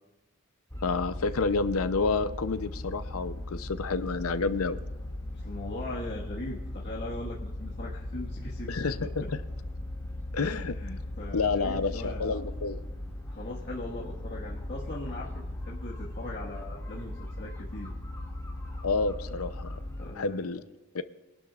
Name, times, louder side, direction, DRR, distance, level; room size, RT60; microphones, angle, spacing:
sound 1, 0.7-20.1, left 1 dB, 15° left, 2.2 m, -38 dB
voice 1, 0.8-4.8 8.7-9.2 10.3-10.7 11.3-12.8 18.8-19.8 20.2-20.6 20.9-21.0, left 4 dB, 80° left, 12 dB, 0.7 m, -29 dB
voice 2, 5.3-8.9 9.2-9.3 10.5-12.4 13.3-17.9 20.0-20.5, left 2 dB, 50° left, -5 dB, 1.6 m, -40 dB
23.5 x 11.5 x 2.4 m, 1.2 s
head